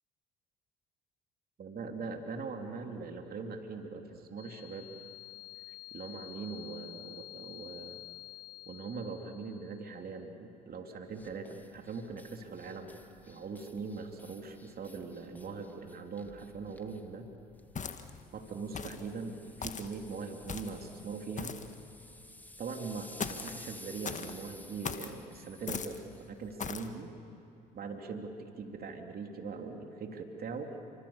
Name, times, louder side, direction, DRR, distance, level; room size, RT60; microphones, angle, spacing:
voice 1, 1.6-4.9 5.7-8.0 8.7-13.0 13.3-17.3 18.3-21.6 22.6-26.0 26.3-27.1 27.7-30.7, right 4 dB, 45° right, 4 dB, 3.1 m, -41 dB
sound 1, 4.4-10.0, left 22 dB, 75° left, 0.6 m, -49 dB
sound 2, 11.1-26.6, left 1 dB, 10° left, 2.0 m, -54 dB
sound 3, 17.8-18.2 18.8-19.1 19.6-19.9 20.5-20.8 21.4-21.7 23.2-23.6 24.0-24.3 24.8-25.1 25.7-26.0 26.6-26.9, left 6 dB, 35° left, 1.7 m, -39 dB
29.0 x 26.0 x 7.2 m, 2.7 s
hypercardioid pair, 60°, 21 cm